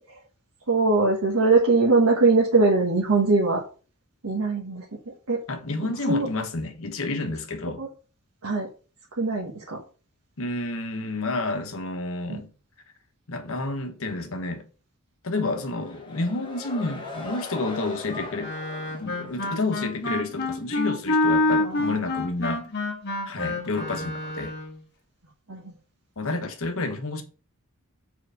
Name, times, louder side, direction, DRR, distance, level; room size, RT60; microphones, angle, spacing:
voice 1, 0.7-3.6 4.2-5.4 6.1-6.3 7.8-7.9 8.4-8.7 9.2-9.8 12.3-12.4 21.6-22.0 25.5-25.7, right 3 dB, 70° right, 1.4 m, -22 dB
voice 2, 5.5-7.8 10.4-12.5 13.3-14.7 15.2-18.5 19.0-22.6 23.2-24.5 26.2-27.2, left 2 dB, 65° left, 1.1 m, -30 dB
sound 1, 15.5-20.0, left 2 dB, 20° left, 1.3 m, -40 dB
Wind instrument woodwind instrument, 18.4-24.8, left 2 dB, 50° left, 1.4 m, -27 dB
4.9 x 4.5 x 5.2 m
head